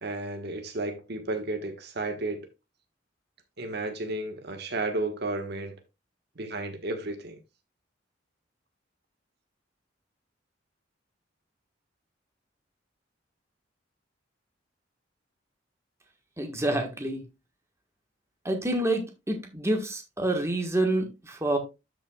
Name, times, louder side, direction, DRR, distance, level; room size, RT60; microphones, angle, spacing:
voice 1, 0.0-2.5 3.6-5.8 6.3-7.4, right 2 dB, 60° right, 1.5 m, -33 dB
voice 2, 16.4-17.2 18.4-21.6, right 1 dB, 15° right, 1.5 m, -28 dB
12.5 x 5.8 x 2.4 m
head